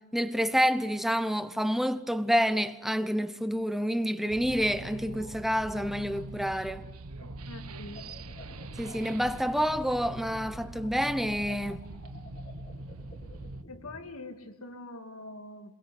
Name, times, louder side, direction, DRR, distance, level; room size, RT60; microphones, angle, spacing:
voice 1, 0.1-6.9 8.8-11.8, equal, ahead, 1.0 m, -28 dB
sound 1, 4.3-13.6, right 2 dB, 90° right, 1.3 m, -43 dB
sound 2, 7.2-14.0, left 2 dB, 40° left, 3.3 m, -50 dB
voice 2, 7.5-8.1 13.7-15.7, left 2 dB, 75° left, 2.0 m, -44 dB
27.5 x 21.0 x 10.0 m
head